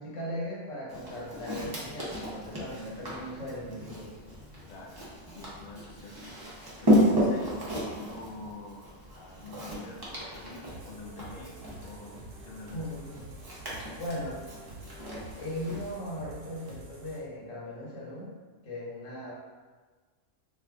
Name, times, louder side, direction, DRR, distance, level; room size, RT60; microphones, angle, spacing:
voice 1, 0.0-4.1 12.7-13.2 14.0-14.4 15.4-18.3 18.6-19.3, left 1 dB, 85° left, -6 dB, 1.3 m, -38 dB
Walk footsteps, 0.9-15.9, equal, 30° right, 0.4 m, -33 dB
voice 2, 4.7-6.2 6.5-8.9 9.1-12.9, left 3 dB, 55° left, -2 dB, 0.6 m, -46 dB
sound 1, 10.6-17.2, right 2 dB, 75° right, 0.9 m, -48 dB
2.5 x 2.4 x 3.4 m, 1.4 s
omnidirectional pair, 1.3 m